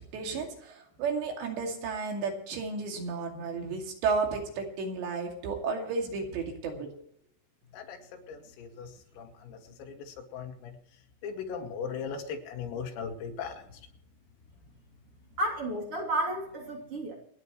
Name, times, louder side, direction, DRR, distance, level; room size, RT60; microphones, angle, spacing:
voice 1, 0.1-6.9 13.2-13.3, right 4 dB, 65° right, 2 dB, 4.4 m, -33 dB
voice 2, 8.3-8.9 9.2-10.7 11.2-13.6, left 6 dB, 90° left, 3 dB, 4.8 m, -38 dB
voice 3, 15.4-17.1, right 1 dB, 35° right, -2 dB, 3.3 m, -31 dB
28.5 x 9.8 x 3.2 m, 0.69 s
omnidirectional pair, 5.8 m